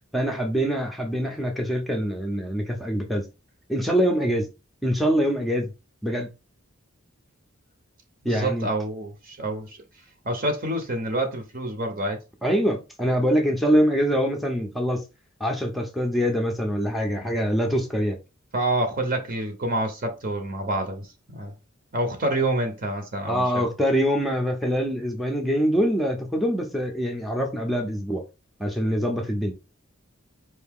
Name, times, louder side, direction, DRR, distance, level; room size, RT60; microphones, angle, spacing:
voice 1, 0.1-3.3 3.7-4.5 4.8-5.7 6.0-6.3 8.2-8.7 12.4-15.0 15.4-18.2 23.3-28.2 28.6-29.5, equal, ahead, 0.6 m, -24 dB
voice 2, 8.2-9.8 10.2-12.2 18.5-21.5 21.9-23.7, right 1 dB, 45° right, 0.8 m, -27 dB
4.6 x 2.7 x 3.6 m
head